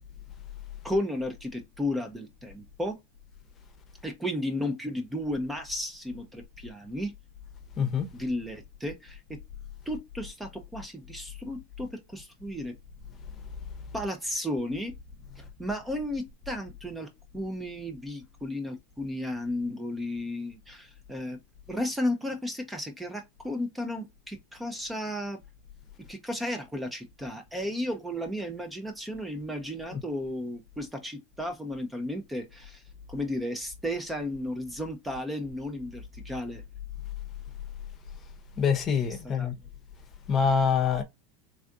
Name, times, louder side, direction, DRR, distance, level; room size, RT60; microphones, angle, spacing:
voice 1, 0.8-3.0 4.0-7.1 8.1-9.2 9.9-12.7 13.9-14.9 15.4-21.4 21.7-25.4 26.1-32.8 33.1-36.6 39.4-39.5, left 1 dB, 5° right, 0.6 m, -34 dB
voice 2, 7.8-8.1 29.9-30.0 38.6-39.5 40.3-41.0, left 6 dB, 30° left, 0.8 m, -25 dB
3.4 x 2.5 x 2.3 m
supercardioid pair, 130°, 0 cm